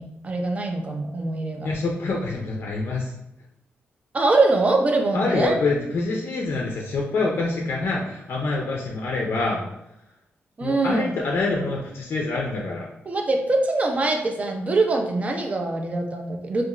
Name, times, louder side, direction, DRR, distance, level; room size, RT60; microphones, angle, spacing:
voice 1, 0.0-1.7 4.1-5.5 10.6-11.1 13.1-16.6, right 2 dB, 30° right, 3 dB, 0.4 m, -23 dB
voice 2, 1.6-3.1 5.1-9.7 10.6-12.9, left 3 dB, 60° left, -1 dB, 0.4 m, -26 dB
2.9 x 2.3 x 2.3 m, 0.83 s
wide cardioid pair, 120°, 4 cm